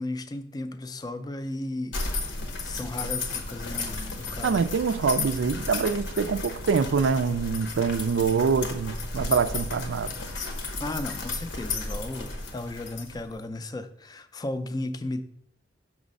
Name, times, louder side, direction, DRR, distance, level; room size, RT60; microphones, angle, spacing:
voice 1, 0.0-2.0 2.6-4.6 10.8-15.2, left 2 dB, 20° left, 0.3 m, -35 dB
sound 1, 1.9-13.4, left 3 dB, 80° left, 1.0 m, -34 dB
voice 2, 4.4-10.1, right 5 dB, 85° right, 0.4 m, -25 dB
6.2 x 3.1 x 5.3 m
head